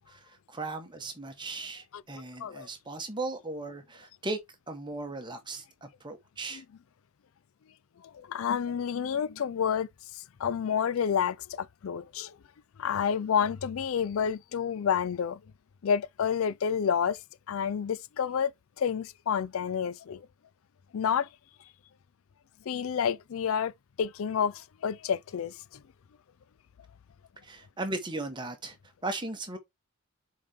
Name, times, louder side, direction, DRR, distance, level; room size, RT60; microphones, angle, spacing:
voice 1, 0.0-4.4 4.7-6.6 27.4-28.8 29.0-29.6, right 2 dB, 20° right, 1.3 m, -37 dB
voice 2, 8.0-12.4 12.8-15.4 15.8-17.2 17.5-18.5 18.8-20.3 20.9-21.3 22.7-23.7 24.0-25.8, left 7 dB, 65° left, 0.4 m, -29 dB
7.1 x 4.1 x 3.6 m
head